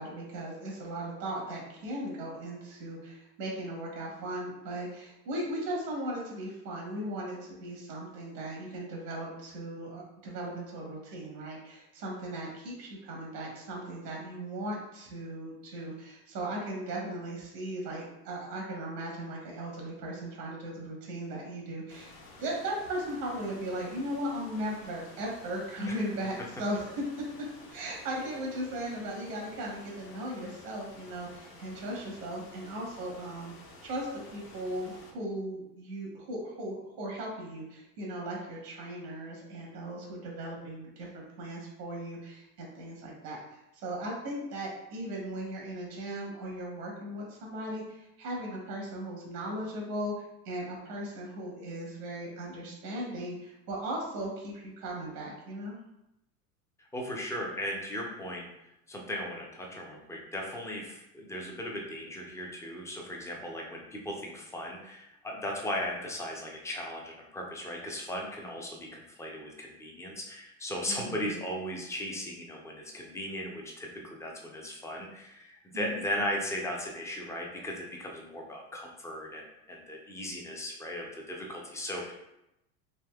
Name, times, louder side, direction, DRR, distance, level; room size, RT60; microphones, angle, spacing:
voice 1, 0.0-22.1 22.4-26.9 27.7-33.5 33.8-50.1 50.4-55.8 70.9-71.4 75.7-76.0, right 1 dB, 90° right, -1 dB, 1.1 m, -37 dB
sound 1, 21.9-35.1, left 2 dB, 50° left, 0.8 m, -52 dB
voice 2, 56.9-58.5 58.9-82.1, equal, 5° left, -1 dB, 0.4 m, -37 dB
3.4 x 2.7 x 2.2 m, 0.86 s
hypercardioid pair, 95°, 46 cm